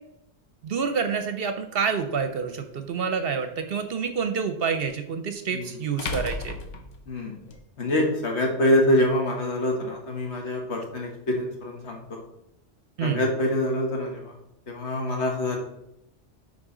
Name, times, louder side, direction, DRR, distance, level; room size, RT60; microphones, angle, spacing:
voice 1, 0.6-6.6 13.0-13.2, right 6 dB, 60° right, 8 dB, 0.8 m, -28 dB
sound 1, 2.1-2.2 4.8-4.9 6.0-7.6, left 3 dB, 85° left, 1.2 m, -34 dB
voice 2, 7.8-12.2 13.0-14.4 14.7-15.6, left 1 dB, 70° left, 1 dB, 1.6 m, -25 dB
9.8 x 4.0 x 3.7 m, 0.84 s
omnidirectional pair, 1.2 m